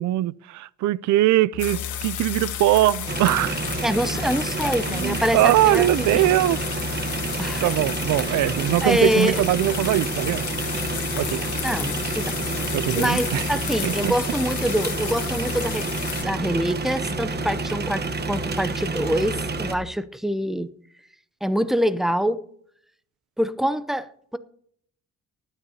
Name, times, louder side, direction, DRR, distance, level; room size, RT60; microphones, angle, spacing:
voice 1, 0.0-3.6 4.9-6.6 7.6-10.4 11.2-11.4 12.7-13.5 13.8-14.1, right 15 dB, 75° right, 0.4 m, -21 dB
Musical instrument, 1.5-19.9, left 8 dB, 55° left, 1.1 m, -37 dB
sound 1, 1.6-16.2, left 11 dB, 75° left, 1.6 m, -33 dB
sound 2, 3.1-19.8, right 4 dB, 35° right, 1.1 m, -29 dB
voice 2, 3.8-6.3 7.4-7.7 8.4-8.6 8.8-9.4 11.6-12.3 12.9-20.7 21.4-22.4 23.4-24.4, equal, ahead, 0.6 m, -25 dB
19.5 x 9.7 x 2.8 m
cardioid pair, 90°, 30 cm